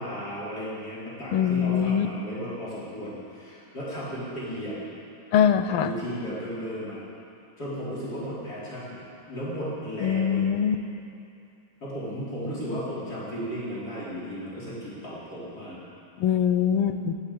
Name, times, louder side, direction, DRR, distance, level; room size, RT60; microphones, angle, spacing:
voice 1, 0.0-4.8 5.7-7.0 7.6-10.5 11.8-15.8, equal, 45° left, -8 dB, 5.0 m, -35 dB
voice 2, 1.3-2.1 5.3-5.9 10.0-10.8 16.2-17.1, left 8 dB, 85° left, 10 dB, 1.7 m, -23 dB
19.0 x 8.4 x 8.6 m, 2.7 s
omnidirectional pair, 2.4 m